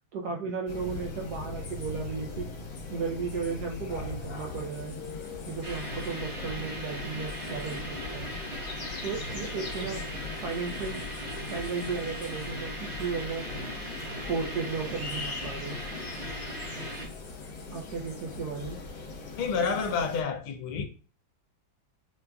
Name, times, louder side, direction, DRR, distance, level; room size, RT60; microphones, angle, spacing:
voice 1, 0.1-2.5 2.9-5.0 5.5-8.3 9.0-10.0 10.4-11.0 11.5-13.4 14.1-15.8 17.7-18.8, right 5 dB, 75° right, 0.9 m, -34 dB
sound 1, 0.7-20.2, left 3 dB, 65° left, 1.6 m, -41 dB
sound 2, 5.6-17.1, equal, 35° right, 1.0 m, -38 dB
voice 2, 19.4-20.8, left 5 dB, 85° left, 1.5 m, -29 dB
6.6 x 2.4 x 2.2 m
omnidirectional pair, 2.2 m